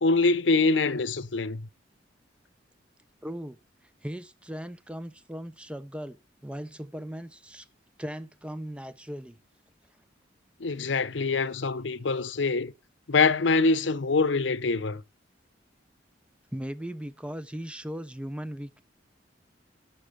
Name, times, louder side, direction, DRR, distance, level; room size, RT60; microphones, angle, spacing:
voice 1, 0.0-1.7 10.6-12.7 13.1-15.0, left 3 dB, 80° left, 0.8 m, -24 dB
voice 2, 3.2-3.6 4.0-7.7 8.0-9.4 16.5-18.8, equal, 5° right, 0.8 m, -38 dB
11.5 x 6.0 x 6.9 m
head